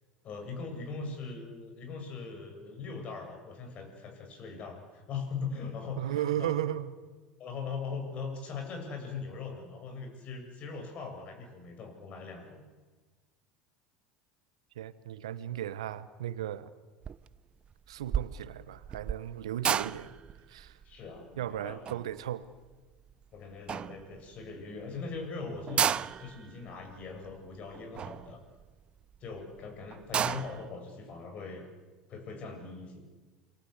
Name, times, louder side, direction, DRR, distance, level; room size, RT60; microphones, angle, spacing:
voice 1, 0.2-6.5 7.4-12.6 20.8-21.8 23.3-25.9 26.2-28.4 29.2-31.7 32.1-33.0, left 4 dB, 45° left, 7.7 m, -40 dB
voice 2, 6.0-6.9 14.7-16.7 17.9-20.1 20.5-20.8 21.4-22.5, right 12 dB, 80° right, 1.2 m, -35 dB
sound 1, 17.0-17.4 17.6-23.2 23.7-24.4 24.9-25.0 25.1-25.2 25.6-29.2 29.6-29.7 29.9-30.7, right 8 dB, 35° right, 0.8 m, -33 dB
28.5 x 23.0 x 8.2 m
hypercardioid pair, 75°, 3 cm